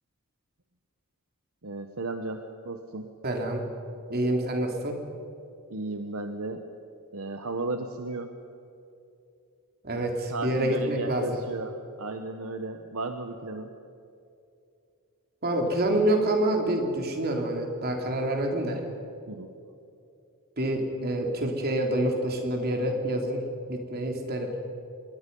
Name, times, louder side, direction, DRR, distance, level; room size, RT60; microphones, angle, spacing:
voice 1, 1.6-3.1 5.7-6.7 7.1-8.4 10.3-13.7 19.3-19.5, right 2 dB, 70° right, 6 dB, 1.2 m, -34 dB
voice 2, 3.2-3.6 4.1-5.0 9.8-11.4 15.4-18.8 20.6-23.4 23.7-24.5, right 1 dB, 45° right, 2 dB, 3.3 m, -27 dB
26.0 x 22.0 x 5.5 m, 2.6 s
head